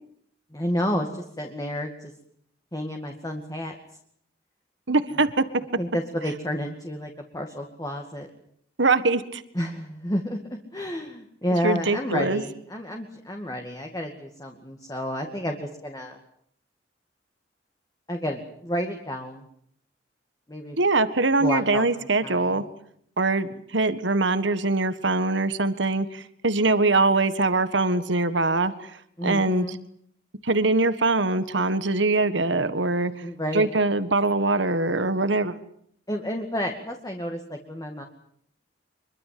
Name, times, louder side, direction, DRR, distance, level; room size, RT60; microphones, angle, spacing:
voice 1, 0.5-2.1 2.7-3.8 5.8-8.3 9.5-10.4 10.7-16.2 18.1-19.5 20.5-20.8 21.4-22.7 29.2-29.8 33.2-33.7 36.1-38.0, equal, 20° left, 3 dB, 2.3 m, -30 dB
voice 2, 4.9-5.4 8.8-9.4 11.6-12.4 20.8-22.6 23.2-28.9 29.2-29.8 30.4-33.1 33.5-35.6, right 3 dB, 80° right, 12 dB, 1.7 m, -23 dB
25.0 x 23.5 x 7.8 m, 0.67 s
head